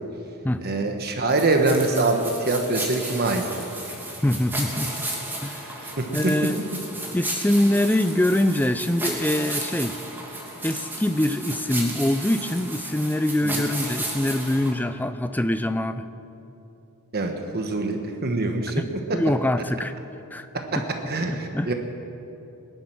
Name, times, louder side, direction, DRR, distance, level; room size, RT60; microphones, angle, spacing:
voice 1, 0.6-3.4 5.8-6.3 13.4-13.7 17.1-18.8 19.1-19.2 20.5-20.6 21.1-21.7, right 2 dB, 45° right, 4 dB, 1.2 m, -24 dB
sound 1, 1.3-14.7, right 1 dB, 10° right, 2.6 m, -33 dB
voice 2, 4.2-4.9 5.4-5.7 6.1-6.6 7.1-9.9 10.6-16.1 18.8-19.9 20.3-20.5 21.3-21.7, left 1 dB, 10° left, 10 dB, 0.5 m, -24 dB
21.0 x 11.0 x 6.2 m, 2.9 s
head